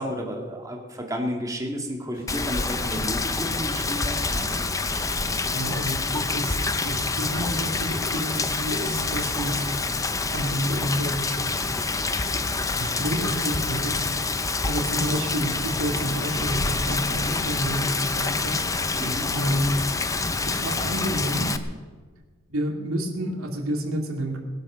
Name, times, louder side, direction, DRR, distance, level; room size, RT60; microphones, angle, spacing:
voice 1, 0.0-4.5 19.0-19.3, equal, 15° right, 2 dB, 2.1 m, -32 dB
sound 1, 2.1-18.5 19.2-19.9, left 1 dB, 70° left, 5.5 m, -46 dB
Rain, 2.3-21.6, left 3 dB, 15° left, 0.7 m, -27 dB
voice 2, 5.5-9.6 10.3-11.6 12.8-18.6 19.3-19.8 20.4-21.5 22.5-24.4, equal, 85° right, 1 dB, 2.6 m, -29 dB
19.0 x 11.0 x 6.4 m, 1.5 s
head